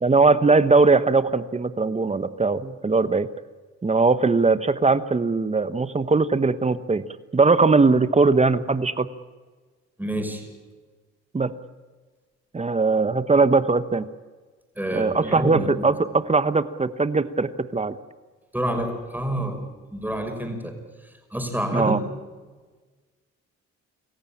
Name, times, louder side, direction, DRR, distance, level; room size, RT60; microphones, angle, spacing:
voice 1, 0.0-3.3 3.8-7.0 7.3-9.1 11.3-11.5 12.5-14.0 14.9-18.0 21.7-22.0, right 3 dB, 20° right, 13 dB, 1.1 m, -20 dB
voice 2, 10.0-10.5 14.8-15.9 18.5-19.6 19.9-20.7 21.3-22.0, right 1 dB, 5° right, 4 dB, 5.7 m, -28 dB
27.0 x 15.0 x 8.8 m, 1.4 s
cardioid pair, 90°, 30 cm